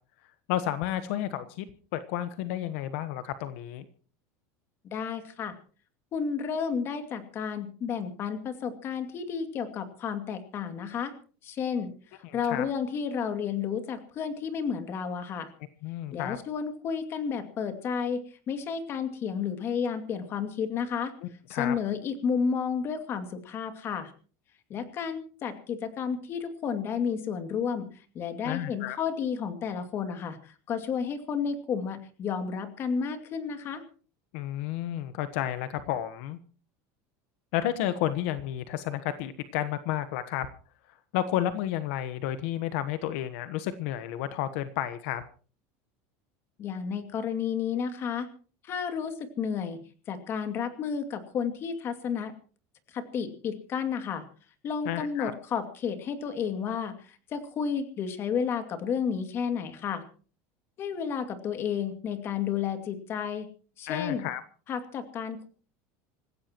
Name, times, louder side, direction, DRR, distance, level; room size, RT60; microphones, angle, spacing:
voice 1, 0.5-1.6 1.9-3.8 12.2-12.6 15.8-16.4 21.5-21.7 28.4-29.0 34.3-36.4 37.5-40.5 41.1-45.2 54.8-55.3 63.9-64.4, left 12 dB, 70° left, 11 dB, 1.2 m, -31 dB
voice 2, 4.8-5.6 6.1-11.1 11.4-15.5 16.1-21.1 21.5-24.1 24.7-27.9 28.1-33.8 46.6-48.3 48.6-49.8 50.1-52.3 52.9-54.2 54.6-60.0 60.8-63.5 63.8-64.2 64.7-65.5, left 6 dB, 35° left, 8 dB, 2.4 m, -32 dB
26.5 x 15.5 x 3.0 m, 0.39 s
cardioid pair, 155°, 7 cm